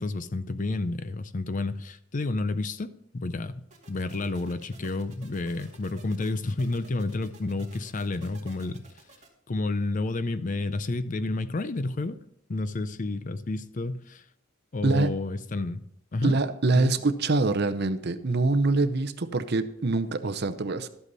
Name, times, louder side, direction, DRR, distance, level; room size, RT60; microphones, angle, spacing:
voice 1, 0.0-8.8 9.5-12.2 12.5-14.2 14.7-15.8 16.1-16.4 16.8-17.0, left 2 dB, 40° left, 0.5 m, -30 dB
sound 1, 3.7-9.3, right 2 dB, 35° right, 2.3 m, -53 dB
voice 2, 16.2-20.9, right 3 dB, 55° right, 0.7 m, -25 dB
12.5 x 8.2 x 4.1 m
head